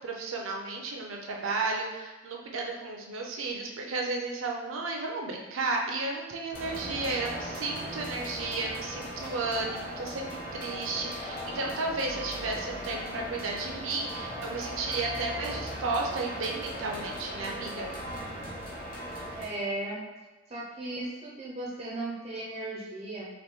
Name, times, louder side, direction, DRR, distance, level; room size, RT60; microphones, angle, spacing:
voice 1, 0.0-17.9, right 3 dB, 85° right, 0 dB, 0.5 m, -33 dB
sound 1, 6.5-19.4, equal, 40° left, 1.1 m, -38 dB
voice 2, 19.4-20.0 20.5-23.3, right 2 dB, 30° right, -5 dB, 0.4 m, -36 dB
2.9 x 2.5 x 3.4 m, 1.2 s
head